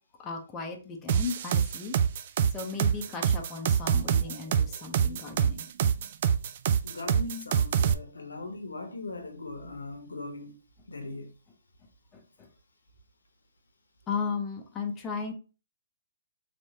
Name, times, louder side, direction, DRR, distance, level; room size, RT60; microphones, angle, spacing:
voice 1, 0.2-2.0 2.5-5.7 12.1-12.2 14.1-15.3, left 5 dB, 15° left, 0.7 m, -35 dB
sound 1, 1.1-7.9, right 8 dB, 45° right, 0.3 m, -25 dB
voice 2, 6.8-10.6 10.9-11.3, left 2 dB, 90° left, 0.8 m, -39 dB
3.3 x 3.0 x 2.7 m
hypercardioid pair, 140°, 0 cm